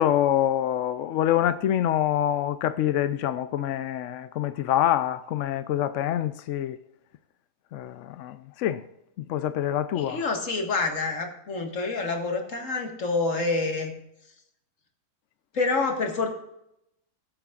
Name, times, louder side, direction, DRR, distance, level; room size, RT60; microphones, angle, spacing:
voice 1, 0.0-6.8 7.7-8.8 9.3-10.2, left 11 dB, 70° left, 0.7 m, -25 dB
voice 2, 9.9-14.0 15.5-16.3, left 3 dB, 50° left, 2.0 m, -27 dB
20.0 x 8.2 x 2.5 m
omnidirectional pair, 1.7 m